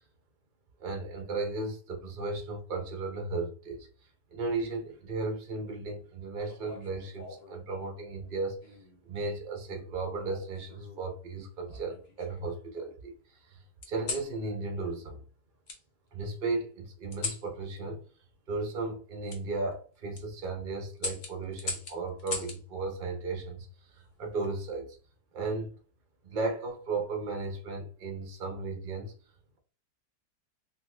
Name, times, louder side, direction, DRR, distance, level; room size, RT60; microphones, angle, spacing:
voice 1, 0.8-3.9 4.3-8.6 9.0-13.6 13.9-15.2 16.1-18.0 18.5-23.7 23.9-24.9 25.3-25.7 26.2-29.1, right 3 dB, 55° right, 0.5 m, -35 dB
sound 1, 6.5-7.6 8.6-9.0 10.3-11.1 11.7-12.6 13.8-14.3 15.7-15.8 17.1-17.5 19.3-19.4 19.9-20.2 21.0-22.6 24.1-24.5, left 3 dB, 50° left, 0.8 m, -39 dB
2.8 x 2.7 x 3.2 m
omnidirectional pair, 1.8 m